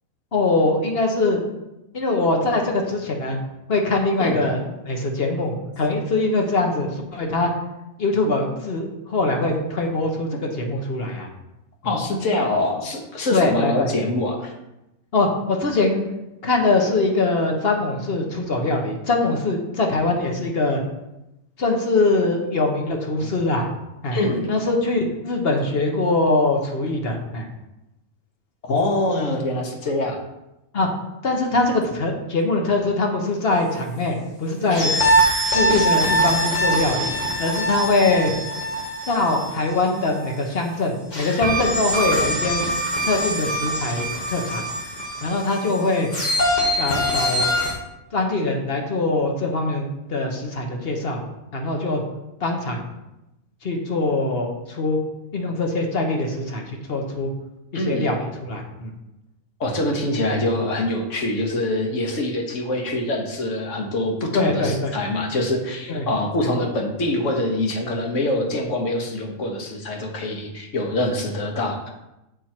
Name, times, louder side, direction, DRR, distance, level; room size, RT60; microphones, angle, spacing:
voice 1, 0.3-1.4 1.9-3.4 3.7-7.5 8.0-11.3 13.3-13.9 15.1-16.0 16.4-20.8 21.6-23.7 24.0-24.2 24.5-27.5 30.7-30.9 31.2-34.9 35.5-37.1 37.4-38.3 39.1-42.6 43.0-44.6 45.2-46.1 46.8-47.6 48.1-51.2 51.5-52.0 52.4-52.9 53.6-55.0 55.3-57.3 57.7-58.9 64.3-65.0 65.9-66.1, left 2 dB, 50° left, 2 dB, 1.3 m, -22 dB
voice 2, 11.8-14.5 24.1-24.5 28.6-30.2 57.7-58.1 59.6-71.9, left 1 dB, 65° left, 2 dB, 1.5 m, -24 dB
sound 1, 34.7-40.3 41.1-47.7, right 1 dB, 35° left, 1.6 m, -23 dB
7.2 x 4.5 x 4.4 m, 0.93 s
omnidirectional pair, 1.4 m